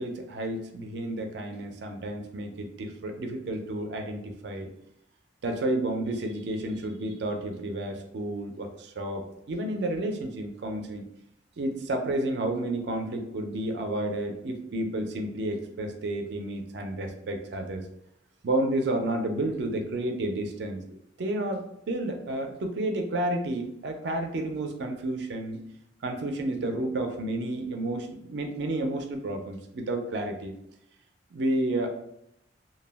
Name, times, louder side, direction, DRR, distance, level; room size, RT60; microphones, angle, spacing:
voice 1, 0.0-4.7 5.4-9.2 9.5-11.1 11.6-17.9 18.4-25.6 26.0-30.5 31.3-31.9, right 1 dB, 60° right, 5 dB, 0.4 m, -31 dB
2.2 x 2.0 x 3.3 m, 0.79 s
head